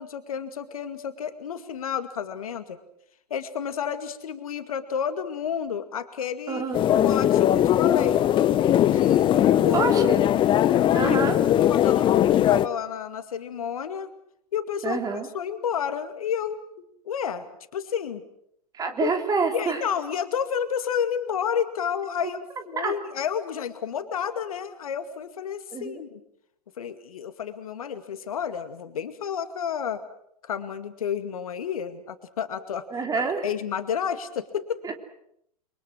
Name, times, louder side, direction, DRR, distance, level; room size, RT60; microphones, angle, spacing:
voice 1, 0.0-2.8 3.3-6.7 7.0-8.3 8.8-9.9 11.0-11.2 11.5-14.1 14.5-15.0 15.3-16.6 17.1-17.5 17.7-18.2 19.0-19.1 19.5-22.4 22.7-26.2 26.8-30.0 30.5-32.8 33.4-34.8, left 8 dB, 65° left, 10 dB, 2.2 m, -30 dB
voice 2, 6.5-6.8 9.7-10.2 10.9-11.4 14.8-15.3 18.7-19.8 22.7-22.9 25.7-26.0 32.9-33.4 34.8-34.9, right 5 dB, 20° right, 5 dB, 3.3 m, -27 dB
sound 1, 6.7-12.7, left 11 dB, 25° left, 1.0 m, -20 dB
30.0 x 23.5 x 6.3 m, 0.72 s
figure-of-eight pair, 100°, 20 cm